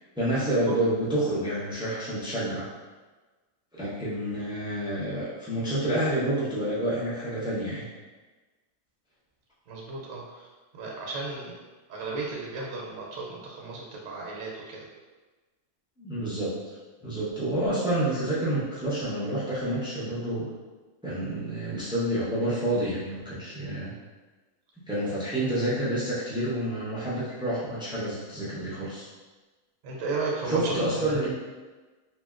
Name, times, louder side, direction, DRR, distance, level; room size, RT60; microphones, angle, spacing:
voice 1, 0.2-2.7 3.7-7.8 16.0-16.5 17.0-20.5 21.0-23.9 24.8-29.1 30.4-31.3, right 1 dB, 10° right, -9 dB, 0.3 m, -28 dB
voice 2, 9.7-10.5 10.8-11.6 11.9-14.9 29.8-31.2, right 3 dB, 75° right, -2 dB, 1.0 m, -34 dB
2.8 x 2.7 x 2.4 m, 1.3 s
omnidirectional pair, 1.4 m